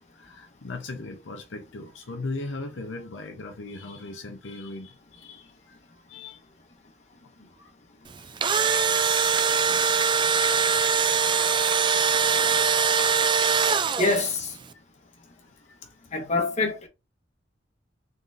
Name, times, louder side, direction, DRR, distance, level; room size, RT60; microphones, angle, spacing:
voice 1, 0.1-6.4 7.6-7.7 8.6-8.7 10.2-10.3 13.0-13.7 14.0-14.2 15.4-15.9, left 2 dB, 75° left, 0.7 m, -39 dB
Engine / Drill, 8.2-14.4, right 6 dB, 25° right, 0.3 m, -22 dB
voice 2, 14.0-14.5 16.1-16.9, left 3 dB, 35° left, 1.2 m, -25 dB
3.9 x 3.8 x 2.5 m
head